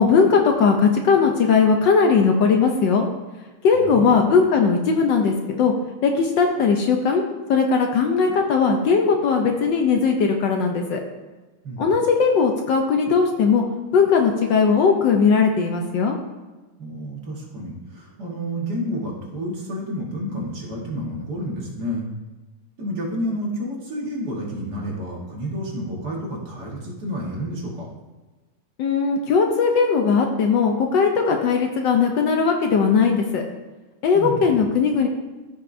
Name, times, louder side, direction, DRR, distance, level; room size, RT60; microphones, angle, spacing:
voice 1, 0.0-3.1 3.6-5.7 6.0-7.2 7.5-11.0 11.8-13.6 13.9-16.2 28.8-33.4 34.0-35.1, left 5 dB, 65° left, 3 dB, 1.3 m, -18 dB
voice 2, 3.7-4.2 11.6-11.9 16.8-22.1 22.8-27.9 34.1-34.6, equal, 50° right, -3 dB, 2.1 m, -30 dB
14.0 x 5.5 x 2.7 m, 1.2 s
omnidirectional pair, 2.3 m